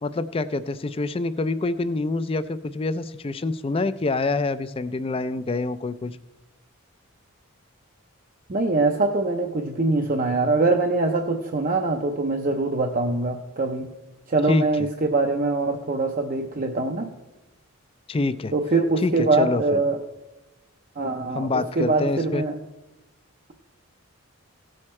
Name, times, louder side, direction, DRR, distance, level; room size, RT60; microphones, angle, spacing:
voice 1, 0.0-6.2 14.5-14.7 18.1-18.5 19.0-19.8 21.3-22.4, left 3 dB, 25° left, 13 dB, 0.3 m, -26 dB
voice 2, 8.5-13.9 14.3-17.1 18.5-20.0 21.0-22.5, right 3 dB, 40° right, 3 dB, 0.6 m, -23 dB
16.5 x 6.4 x 4.3 m, 1.0 s
head